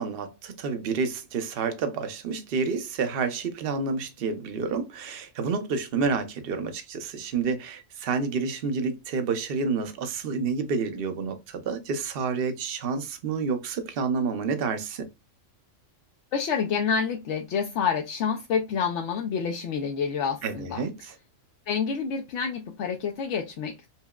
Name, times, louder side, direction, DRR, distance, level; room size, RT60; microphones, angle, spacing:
voice 1, 0.0-15.1 20.4-21.1, right 5 dB, 55° right, 0.8 m, -29 dB
voice 2, 16.3-20.8 21.7-23.9, left 6 dB, 70° left, 0.8 m, -28 dB
5.6 x 2.0 x 2.3 m
omnidirectional pair, 1.4 m